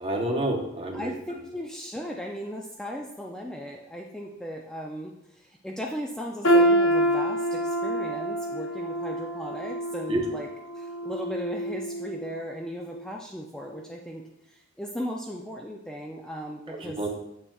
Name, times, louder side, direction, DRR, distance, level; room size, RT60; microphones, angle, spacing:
voice 1, 0.0-1.1 10.1-10.2 16.7-17.2, right 1 dB, 30° right, 2 dB, 0.9 m, -29 dB
voice 2, 0.9-10.5 10.8-14.2 14.5-17.2, equal, 5° left, -1 dB, 0.4 m, -37 dB
sound 1, 6.4-12.4 12.8-13.0 13.8-13.9, right 1 dB, 70° left, 0.8 m, -26 dB
7.3 x 6.6 x 2.3 m, 0.80 s
head